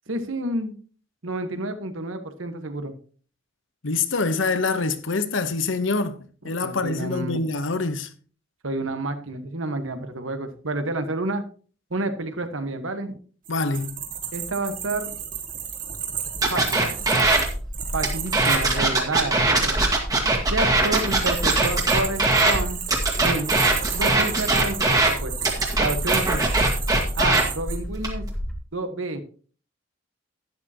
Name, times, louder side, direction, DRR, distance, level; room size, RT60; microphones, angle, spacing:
voice 1, 0.1-0.7 1.2-2.9 6.6-7.5 8.6-11.4 11.9-13.2 14.3-15.2 16.5-16.9 17.9-19.8 20.5-22.8 23.2-23.6 23.9-25.3 25.8-26.5 27.1-28.2 28.7-29.2, right 2 dB, 85° right, 1.4 m, -29 dB
voice 2, 3.8-6.2 6.4-8.1 13.5-14.0, left 3 dB, 75° left, 1.0 m, -25 dB
sound 1, 13.5-18.8 20.6-27.8, right 8 dB, 45° right, 2.0 m, -33 dB
sound 2, 16.4-17.5 18.0-22.6 22.9-25.1 25.4-27.4 28.0-28.3, right 2 dB, 20° right, 1.7 m, -20 dB
Bird, 17.2-28.5, equal, ahead, 1.7 m, -32 dB
11.5 x 10.0 x 2.9 m
head